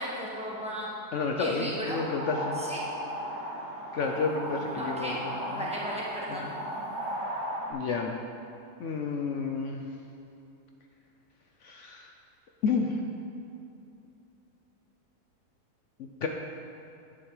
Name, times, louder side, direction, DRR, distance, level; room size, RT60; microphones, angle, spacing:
voice 1, 0.0-1.0 1.4-2.1 2.6-2.8 4.7-5.2 5.5-6.0 6.3-6.5, equal, 5° right, -6 dB, 1.4 m, -35 dB
voice 2, 1.1-2.6 3.9-5.7 6.3-6.5 7.7-8.1 8.8-9.8 11.6-12.1 12.6-13.0 16.0-16.3, left 4 dB, 65° left, 2 dB, 0.8 m, -31 dB
sound 1, 1.8-7.7, equal, 60° right, 2.1 m, -36 dB
9.9 x 8.6 x 3.2 m, 2.7 s
omnidirectional pair, 1.6 m